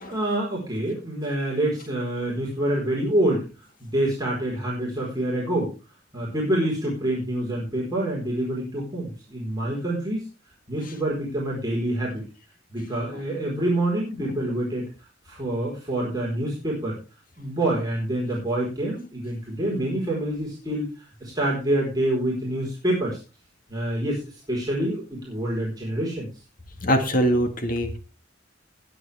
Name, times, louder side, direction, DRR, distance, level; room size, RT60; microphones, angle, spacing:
voice 1, 0.1-3.5 3.8-5.7 6.1-10.3 10.7-12.2 12.7-14.9 15.2-17.0 17.4-23.2 23.7-26.3, right 1 dB, 20° right, -4 dB, 4.5 m, -26 dB
voice 2, 26.8-28.0, equal, 45° left, 6 dB, 1.8 m, -22 dB
20.0 x 7.9 x 3.5 m, 0.32 s
head